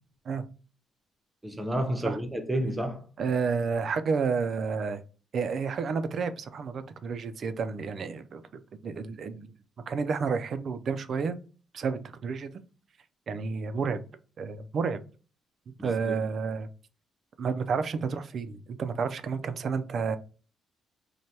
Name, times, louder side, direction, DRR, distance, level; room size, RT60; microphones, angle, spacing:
voice 1, 1.4-3.0 15.8-16.2, right 1 dB, 15° right, 0.6 m, -31 dB
voice 2, 3.2-5.0 5.3-8.4 8.8-9.5 9.9-11.4 11.7-12.5 13.3-14.0 14.4-15.0 15.8-16.7 17.4-20.2, right 5 dB, 55° right, 0.3 m, -30 dB
3.1 x 2.2 x 2.7 m
cardioid pair, 90°, 0 cm